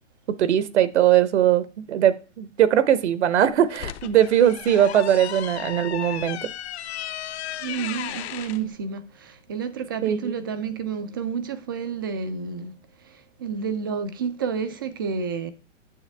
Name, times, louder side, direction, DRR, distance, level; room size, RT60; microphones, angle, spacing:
voice 1, 0.4-6.5 10.0-10.3, right 10 dB, 65° right, 0.9 m, -20 dB
sound 1, 3.5-8.6, left 12 dB, 60° left, 0.8 m, -35 dB
voice 2, 7.6-12.7 13.4-15.5, right 6 dB, 20° right, 0.3 m, -30 dB
8.9 x 7.0 x 3.4 m
hypercardioid pair, 145°, 36 cm